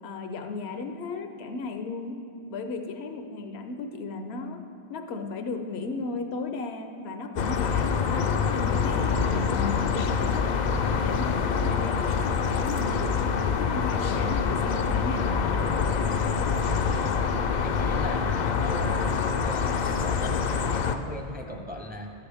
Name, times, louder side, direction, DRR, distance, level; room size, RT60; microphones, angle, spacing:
voice 1, 0.0-2.2 2.5-4.6 4.9-10.5 11.0-13.2 13.6-15.6, left 3 dB, 75° left, 6 dB, 1.0 m, -35 dB
sound 1, 7.4-21.0, left 6 dB, 55° left, 0.5 m, -26 dB
voice 2, 16.9-20.4 20.7-22.1, equal, 10° right, 2 dB, 0.6 m, -39 dB
13.5 x 10.0 x 3.5 m, 2.5 s
omnidirectional pair, 1.1 m